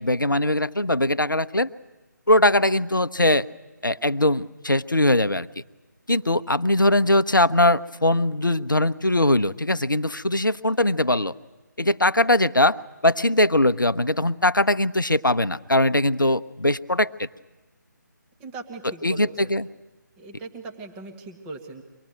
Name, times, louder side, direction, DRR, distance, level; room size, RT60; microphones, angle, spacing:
voice 1, 0.0-1.7 2.3-3.5 3.8-5.5 6.1-11.3 11.8-12.8 13.0-17.3 19.0-19.7, left 1 dB, 85° left, 14 dB, 0.8 m, -21 dB
voice 2, 18.4-19.5 20.2-21.8, right 3 dB, 10° right, 3 dB, 1.3 m, -39 dB
24.5 x 19.0 x 9.1 m, 1.1 s
figure-of-eight pair, 150°, 10 cm